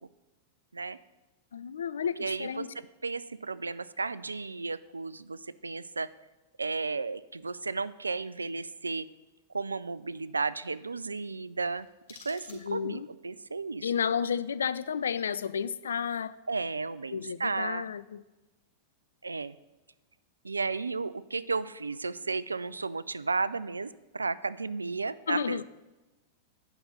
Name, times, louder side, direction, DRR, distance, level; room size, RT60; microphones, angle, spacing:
voice 1, 1.5-2.7 12.5-13.1 13.8-16.3 17.1-18.2 25.3-25.6, left 7 dB, 75° left, 0.3 m, -32 dB
voice 2, 2.2-6.1 6.6-9.1 9.5-11.9 12.2-13.9 16.5-17.9 19.2-19.6 20.4-25.6, right 4 dB, 90° right, 0.3 m, -33 dB
sound 1, 11.6-13.1, left 5 dB, 60° left, 2.7 m, -54 dB
9.0 x 6.0 x 5.5 m
figure-of-eight pair, 95°, 0 cm